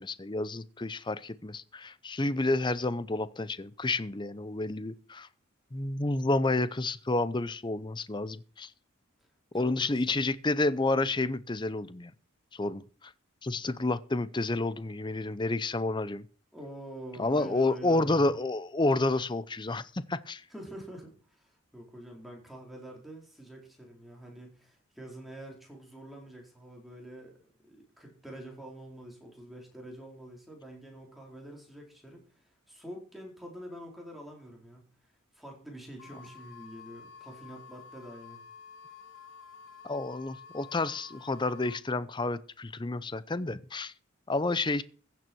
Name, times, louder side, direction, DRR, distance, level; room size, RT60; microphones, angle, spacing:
voice 1, 0.0-5.3 5.7-8.7 9.5-12.1 12.5-13.1 13.4-16.2 17.2-20.4 39.8-43.9 44.3-44.8, left 2 dB, 20° left, 0.6 m, -30 dB
voice 2, 9.5-10.0 16.5-18.1 20.5-27.4 27.7-34.9 35.3-38.4, right 1 dB, ahead, 4.3 m, -46 dB
sound 1, 36.0-41.8, left 6 dB, 80° left, 2.2 m, -50 dB
15.5 x 9.2 x 4.6 m
head